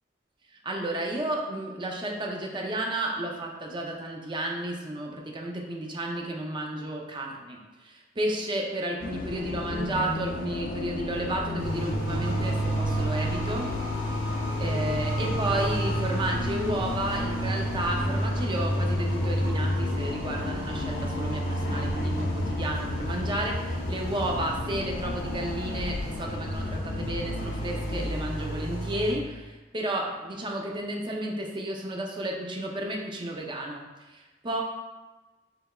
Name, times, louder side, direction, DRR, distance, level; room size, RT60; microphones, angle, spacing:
voice 1, 0.6-13.7 14.6-34.6, right 1 dB, 25° right, 0 dB, 0.5 m, -32 dB
Bus, 9.0-28.1, left 3 dB, 45° left, 0.3 m, -35 dB
sound 1, 11.6-29.1, right 1 dB, 90° left, 1.4 m, -30 dB
5.5 x 3.4 x 2.3 m, 1.2 s
head